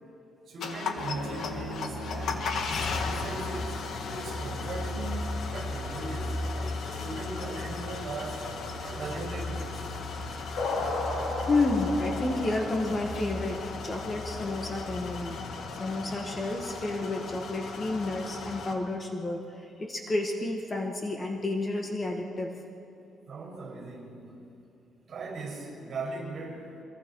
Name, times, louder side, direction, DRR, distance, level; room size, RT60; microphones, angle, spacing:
voice 1, 0.5-2.6 3.0-8.5 8.8-9.8 23.3-24.4 25.1-26.7, right 3 dB, 45° right, 0 dB, 6.5 m, -39 dB
sound 1, 0.6-18.8, left 4 dB, 60° left, 2.0 m, -37 dB
sound 2, 1.0-15.4, left 2 dB, 85° left, 4.9 m, -36 dB
voice 2, 11.5-15.4 15.8-22.5, left 2 dB, 25° left, 2 dB, 1.6 m, -30 dB
25.0 x 22.5 x 4.7 m, 2.7 s
cardioid pair, 135°, 0 cm